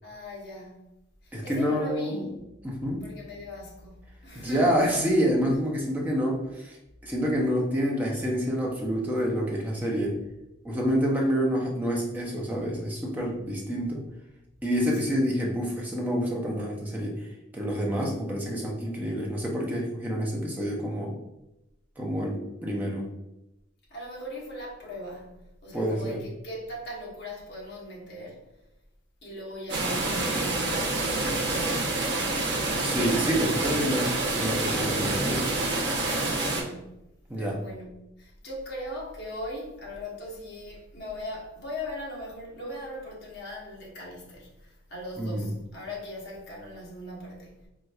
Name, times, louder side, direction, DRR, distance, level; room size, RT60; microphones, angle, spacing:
voice 1, 0.0-0.8 1.2-2.3 3.0-4.7 15.1-15.2 23.9-28.4 29.2-32.9 36.0-37.0 37.3-47.5, left 1 dB, 50° left, 0.9 m, -39 dB
voice 2, 1.3-2.2 2.6-3.0 4.3-6.8 7.0-10.2 10.6-14.0 14.6-17.3 17.5-21.1 22.0-23.1 25.7-26.2 32.7-35.4 37.3-37.6 45.2-45.5, equal, 10° right, 0.5 m, -28 dB
sound 1, 29.7-36.6, right 2 dB, 55° right, 0.7 m, -27 dB
4.1 x 2.3 x 2.3 m
head